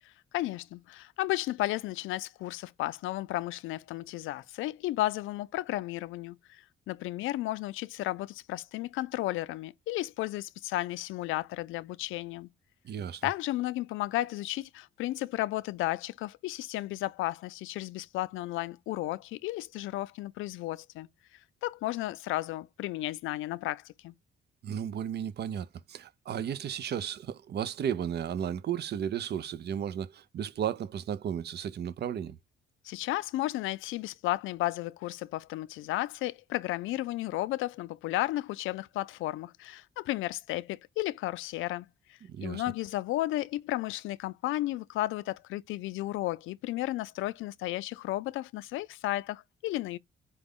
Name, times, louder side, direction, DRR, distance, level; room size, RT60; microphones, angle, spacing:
voice 1, 0.0-12.5 13.2-21.1 21.6-24.1 32.8-50.0, left 16 dB, 85° left, 0.4 m, -33 dB
voice 2, 12.8-13.3 24.6-32.4 42.2-42.6, right 9 dB, 55° right, 0.6 m, -34 dB
4.9 x 2.2 x 3.5 m
cardioid pair, 90°, 20 cm